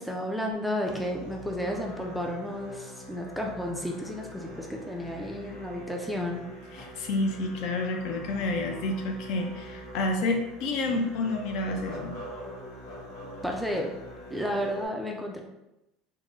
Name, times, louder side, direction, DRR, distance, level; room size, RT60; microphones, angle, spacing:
voice 1, 0.0-6.4 13.4-13.9 14.3-15.4, equal, ahead, 0 dB, 0.3 m, -32 dB
Musical instrument, 0.8-14.9, equal, 75° left, 1.2 m, -43 dB
voice 2, 6.7-12.2, left 2 dB, 55° left, 3 dB, 0.5 m, -29 dB
3.6 x 2.0 x 3.0 m, 0.91 s
cardioid pair, 155°, 0 cm